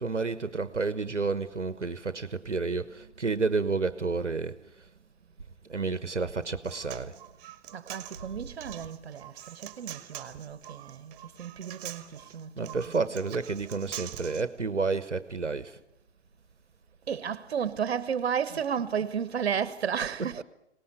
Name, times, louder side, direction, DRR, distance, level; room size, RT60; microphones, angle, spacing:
voice 1, 0.0-4.6 5.7-7.2 12.6-15.8 20.2-20.4, right 4 dB, 85° right, 1.3 m, -30 dB
Human voice, 6.4-14.4, right 12 dB, 30° right, 2.2 m, -44 dB
voice 2, 7.7-13.2 17.1-20.4, right 7 dB, 60° right, 1.5 m, -33 dB
25.0 x 19.0 x 8.1 m
figure-of-eight pair, 120°, 35 cm